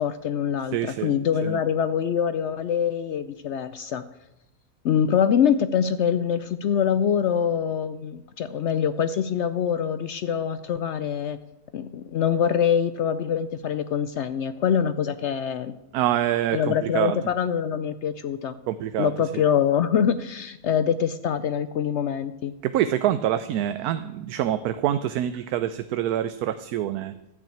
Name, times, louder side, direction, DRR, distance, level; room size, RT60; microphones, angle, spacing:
voice 1, 0.0-4.1 4.8-11.4 11.7-15.8 16.5-18.6 19.0-22.5, left 8 dB, 70° left, 12 dB, 0.6 m, -24 dB
voice 2, 0.7-1.1 1.4-1.6 15.9-17.2 18.7-19.1 22.6-27.1, right 11 dB, 75° right, 11 dB, 1.1 m, -26 dB
13.0 x 6.1 x 8.6 m, 0.93 s
omnidirectional pair, 1.7 m